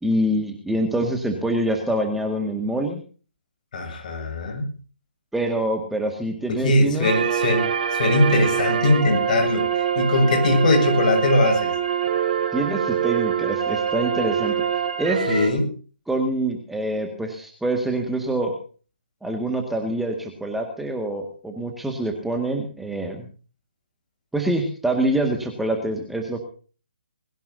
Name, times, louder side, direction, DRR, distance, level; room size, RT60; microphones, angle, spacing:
voice 1, 0.0-3.0 5.3-7.1 12.5-14.6 15.0-15.5 16.1-18.6 19.2-23.3 24.3-26.4, right 1 dB, 5° right, 2 dB, 1.9 m, -25 dB
voice 2, 3.7-4.7 6.5-11.7 15.3-15.7, left 2 dB, 45° left, 4 dB, 7.1 m, -21 dB
sound 1, 7.0-15.5, right 8 dB, 45° right, 5.1 m, -24 dB
21.5 x 17.5 x 2.8 m, 0.39 s
figure-of-eight pair, 140°, 6 cm